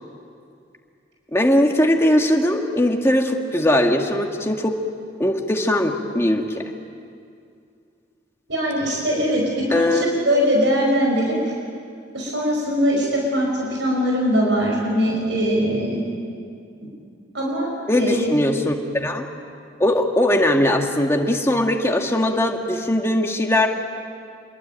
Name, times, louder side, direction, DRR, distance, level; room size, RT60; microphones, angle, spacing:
voice 1, 1.3-4.8 5.2-6.6 9.7-10.1 17.9-19.3 19.8-23.7, left 1 dB, 15° left, 2 dB, 2.1 m, -20 dB
voice 2, 8.5-11.4 12.1-16.0 17.3-17.7 18.0-18.3, equal, 75° right, -2 dB, 5.6 m, -21 dB
28.0 x 22.0 x 9.1 m, 2.4 s
head